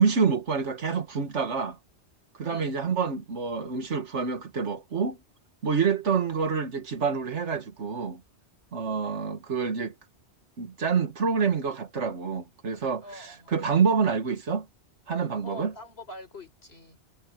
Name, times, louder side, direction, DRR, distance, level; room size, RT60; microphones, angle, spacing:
voice 1, 0.0-1.8 2.3-5.2 5.6-8.2 8.7-9.9 10.6-14.7 15.1-15.7, right 5 dB, 90° right, 1.9 m, -27 dB
voice 2, 2.5-2.8 13.0-13.5 15.4-17.0, equal, 60° left, 4.7 m, -44 dB
omnidirectional pair, 1.2 m